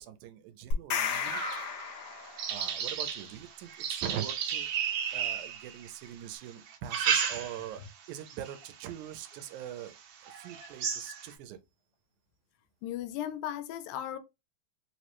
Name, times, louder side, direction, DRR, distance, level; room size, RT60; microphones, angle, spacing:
voice 1, 0.0-1.7 2.5-4.7 5.1-9.9 10.2-11.6, right 10 dB, 85° right, 2.0 m, -42 dB
sound 1, 0.7-2.7, left 5 dB, 70° left, 1.6 m, -33 dB
sound 2, 1.1-6.1 6.7-7.8 8.3-8.6 9.2-9.3 9.8-9.9 10.3-11.3, right 8 dB, 70° right, 1.6 m, -34 dB
voice 2, 12.8-14.2, left 11 dB, 90° left, 2.0 m, -36 dB
4.7 x 2.0 x 2.9 m
omnidirectional pair, 3.4 m